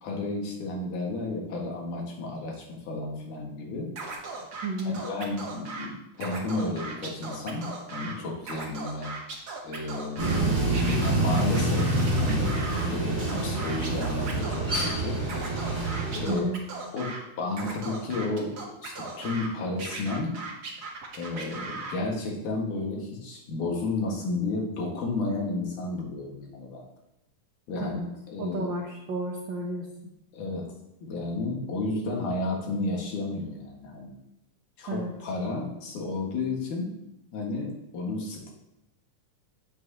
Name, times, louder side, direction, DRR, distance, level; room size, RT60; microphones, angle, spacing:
voice 1, 0.0-3.9 4.8-9.2 9.6-10.6 11.0-12.6 12.9-15.2 16.1-16.4 16.9-20.3 21.2-26.8 27.7-28.7 30.3-30.7 31.0-34.1 34.8-36.9 37.3-38.5, left 2 dB, 85° left, -1 dB, 3.2 m, -32 dB
Scratching (performance technique), 4.0-5.9 6.1-8.1 8.4-10.4 10.7-12.9 13.3-14.9 15.2-17.2 17.5-19.5 19.8-22.0, right 3 dB, 45° right, 1.3 m, -38 dB
voice 2, 4.6-5.0 16.3-16.6 27.8-28.0 28.4-29.9 34.9-35.1, right 2 dB, 70° right, -1 dB, 1.1 m, -31 dB
sound 1, 10.2-16.2, right 2 dB, 20° right, 3.7 m, -26 dB
10.0 x 7.6 x 2.9 m, 0.85 s
omnidirectional pair, 3.4 m